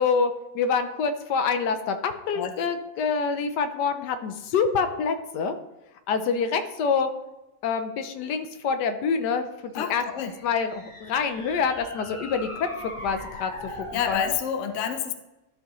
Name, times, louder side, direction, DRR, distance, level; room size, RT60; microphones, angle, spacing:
voice 1, 0.0-5.5 6.1-7.1 7.6-13.5 13.8-14.1, left 5 dB, 80° left, 8 dB, 1.3 m, -26 dB
voice 2, 9.7-10.3 13.7-15.1, left 8 dB, 55° left, 7 dB, 1.0 m, -29 dB
sound 1, 10.0-14.4, left 1 dB, 25° left, 0.9 m, -40 dB
12.5 x 5.4 x 3.1 m, 0.98 s
omnidirectional pair, 1.8 m